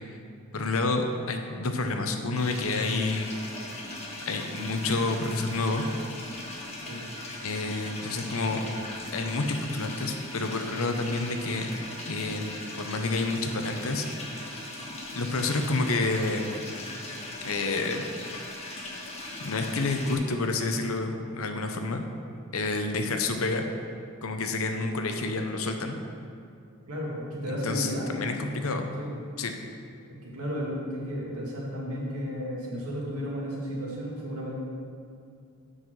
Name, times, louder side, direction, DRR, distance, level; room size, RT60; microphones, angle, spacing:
voice 1, 0.5-3.4 4.3-5.8 7.4-8.6 9.1-11.7 12.1-12.5 12.8-14.1 14.4-14.6 15.1-16.6 17.4-18.0 19.4-22.0 22.5-23.6 24.2-25.9 27.5-28.9 29.4-29.5, left 3 dB, 70° left, 5 dB, 0.8 m, -29 dB
sound 1, 2.3-20.1, left 2 dB, 30° left, 1.4 m, -39 dB
voice 2, 6.9-7.2 8.5-8.8 26.9-28.3 29.0-29.2 30.1-34.6, equal, 90° right, -4 dB, 2.2 m, -33 dB
8.1 x 5.7 x 6.2 m, 2.4 s
head